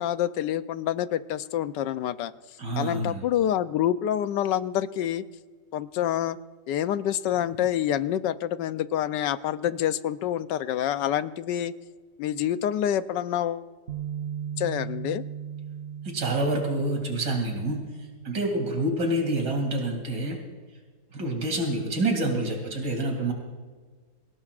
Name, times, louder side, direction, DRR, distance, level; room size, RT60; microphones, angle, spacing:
voice 1, 0.0-2.3 2.8-5.2 5.7-6.4 6.7-11.7 12.2-13.7 14.6-15.2, left 11 dB, 80° left, 13 dB, 1.3 m, -27 dB
voice 2, 2.6-3.2 16.0-17.8 18.2-20.4 21.1-23.3, right 2 dB, 75° right, 2 dB, 3.3 m, -27 dB
Bass guitar, 13.9-20.1, right 8 dB, 60° right, 0.6 m, -39 dB
25.0 x 17.5 x 2.5 m, 1.5 s
omnidirectional pair, 1.9 m